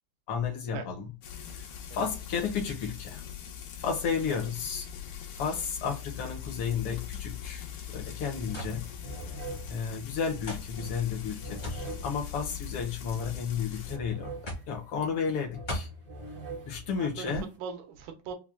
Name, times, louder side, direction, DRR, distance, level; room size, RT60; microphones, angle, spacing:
voice 1, 0.3-1.1 1.5-1.7 1.9-3.2 3.8-4.8 5.3-7.6 7.9-8.9 9.7-14.3 14.7-15.9 16.7-17.4, left 6 dB, 65° left, 1.5 m, -32 dB
Frying (food), 1.2-14.0, left 9 dB, 90° left, 2.4 m, -41 dB
sound 1, 8.0-8.1 8.3-17.6, right 3 dB, 70° right, 0.5 m, -45 dB
sound 2, 8.5-8.8 9.7-9.8 10.5-10.7 11.6-11.9 12.9-13.3 14.5-14.7 15.7-16.0, equal, 40° left, 0.6 m, -36 dB
voice 2, 17.0-18.3, right 6 dB, 90° right, 2.4 m, -39 dB
5.8 x 2.2 x 2.5 m
omnidirectional pair, 3.5 m